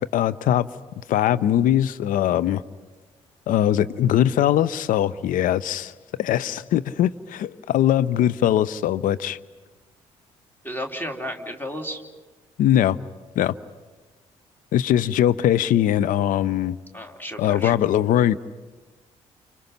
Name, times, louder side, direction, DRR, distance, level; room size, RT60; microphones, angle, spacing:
voice 1, 0.1-0.7 1.1-2.6 3.5-5.9 6.2-9.4 12.6-13.0 13.4-13.5 14.7-16.8 17.4-18.4, left 11 dB, 55° left, 0.7 m, -21 dB
voice 2, 10.6-12.0 16.9-17.8, equal, 10° left, 3.5 m, -33 dB
29.5 x 29.5 x 5.9 m
figure-of-eight pair, 40°, 16 cm